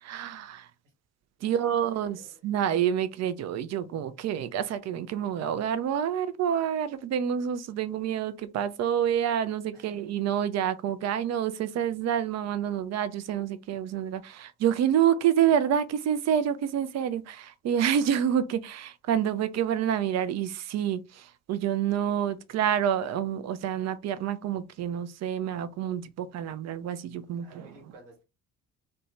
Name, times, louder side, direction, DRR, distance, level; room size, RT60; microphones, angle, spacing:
voice 1, 0.0-0.7 1.4-27.7, right 9 dB, 45° right, 0.4 m, -28 dB
voice 2, 1.4-2.4 9.7-9.9 27.3-28.2, right 2 dB, 80° right, 1.2 m, -53 dB
2.6 x 2.1 x 3.0 m
hypercardioid pair, 50°, 37 cm